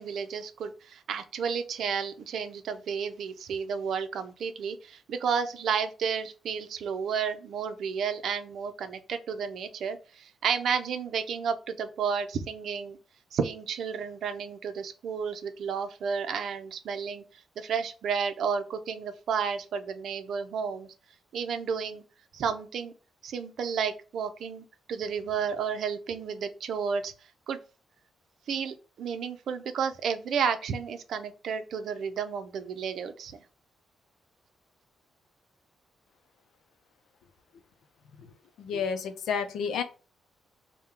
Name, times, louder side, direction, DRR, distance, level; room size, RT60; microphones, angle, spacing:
voice 1, 0.0-13.0 13.3-17.2 17.6-20.9 21.3-22.0 22.3-22.9 23.2-27.1 27.5-27.6 28.5-33.4, right 6 dB, 75° right, 9 dB, 0.5 m, -32 dB
voice 2, 38.6-39.8, left 6 dB, 90° left, 9 dB, 0.5 m, -31 dB
3.7 x 2.2 x 4.3 m, 0.35 s
cardioid pair, 100°, 0 cm